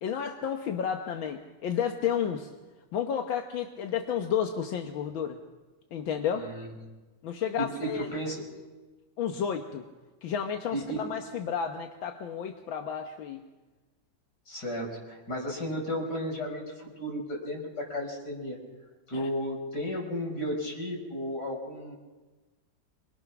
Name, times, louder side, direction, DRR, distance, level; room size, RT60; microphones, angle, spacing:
voice 1, 0.0-2.5 2.9-5.4 5.9-6.5 7.2-8.1 9.2-9.8 10.2-13.5 19.1-19.3, left 8 dB, 85° left, 4 dB, 1.9 m, -31 dB
voice 2, 6.3-6.7 7.6-8.4 10.7-11.0 14.5-18.6 19.1-22.0, equal, 55° left, 0 dB, 5.6 m, -34 dB
26.0 x 21.0 x 6.0 m, 1.2 s
omnidirectional pair, 2.1 m